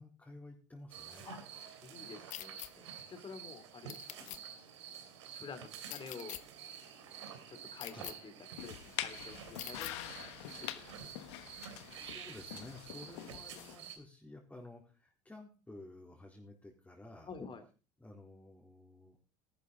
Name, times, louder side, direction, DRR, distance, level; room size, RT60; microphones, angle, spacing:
voice 1, 0.0-1.3 7.9-8.1 11.7-17.3 18.0-19.2, left 2 dB, 10° left, -1 dB, 4.1 m, -53 dB
sound 1, 0.9-14.0, right 8 dB, 85° right, 3.2 m, -50 dB
voice 2, 1.8-4.4 5.3-6.4 7.5-8.3 8.6-10.3 10.6-11.1 17.3-17.6, left 5 dB, 35° left, 10 dB, 3.2 m, -50 dB
sound 2, 2.3-2.7 3.9-4.4 5.9-6.4 7.8-8.1 9.6-9.9, left 15 dB, 60° left, 1.2 m, -44 dB
sound 3, 8.6-13.8, left 14 dB, 75° left, 1.3 m, -45 dB
14.0 x 12.0 x 4.1 m, 0.36 s
hypercardioid pair, 75°, 15 cm